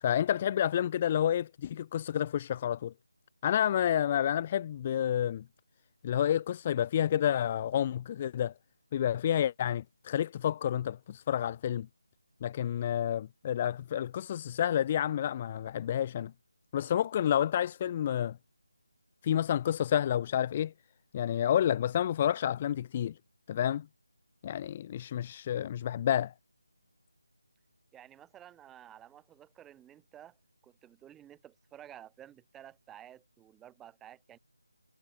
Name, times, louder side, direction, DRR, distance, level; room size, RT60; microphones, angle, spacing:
voice 1, 0.0-2.9 3.4-5.4 6.0-8.5 8.9-11.9 12.4-16.3 16.7-18.4 19.2-20.7 21.1-23.2 23.5-23.9 24.4-26.3, left 10 dB, 20° left, 0.3 m, -29 dB
voice 2, 27.9-30.4 30.6-34.4, right 11 dB, 5° right, 4.0 m, -53 dB
figure-of-eight pair, 170°, 0 cm